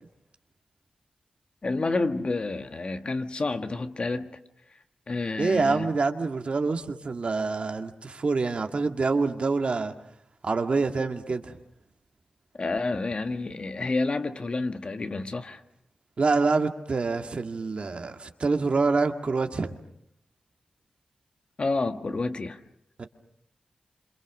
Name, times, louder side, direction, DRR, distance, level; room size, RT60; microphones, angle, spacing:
voice 1, 1.6-4.3 5.1-5.9 12.6-15.6 21.6-22.6, left 3 dB, 50° left, 1.7 m, -29 dB
voice 2, 5.4-9.9 10.4-11.6 16.2-19.7 23.0-23.1, right 4 dB, 55° right, 2.0 m, -26 dB
27.0 x 27.0 x 6.2 m
cardioid pair, 60°, 2 cm